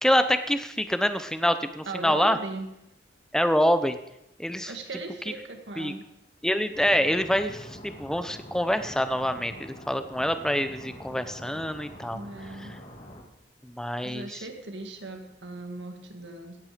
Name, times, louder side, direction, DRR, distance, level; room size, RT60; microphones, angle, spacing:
voice 1, 0.0-2.4 3.3-4.0 4.4-4.7 5.8-5.9 6.4-12.2 13.6-14.4, equal, 5° left, 10 dB, 0.7 m, -26 dB
voice 2, 1.9-2.7 4.7-6.0 12.1-12.7 14.0-16.6, right 2 dB, 85° right, 4 dB, 2.0 m, -38 dB
sound 1, 6.7-13.2, equal, 40° left, 2.2 m, -45 dB
16.5 x 9.4 x 5.1 m, 0.85 s
head